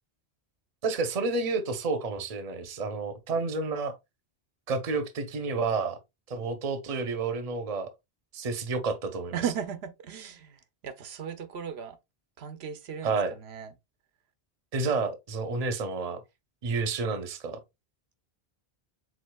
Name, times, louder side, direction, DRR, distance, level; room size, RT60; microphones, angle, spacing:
voice 1, 0.8-4.0 4.7-6.0 6.3-7.9 8.3-9.4 13.0-13.3 14.7-16.2 16.6-17.6, right 4 dB, 40° right, 0.7 m, -30 dB
voice 2, 9.3-12.0 12.4-13.2 13.4-13.7, right 8 dB, 85° right, 0.9 m, -36 dB
4.9 x 3.9 x 2.2 m
omnidirectional pair, 1.0 m